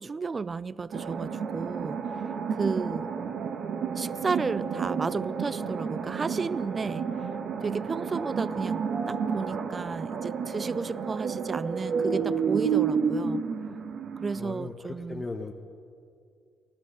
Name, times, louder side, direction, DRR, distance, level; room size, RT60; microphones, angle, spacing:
voice 1, 0.0-2.2 2.6-3.1 4.0-7.1 7.6-13.4 14.2-15.3, right 4 dB, 35° right, 20 dB, 0.3 m, -33 dB
sound 1, 0.9-14.4, right 6 dB, 65° right, 1.1 m, -31 dB
voice 2, 14.4-15.5, left 3 dB, 25° left, 3 dB, 0.9 m, -37 dB
15.0 x 12.0 x 6.6 m, 2.4 s
cardioid pair, 90°, 0 cm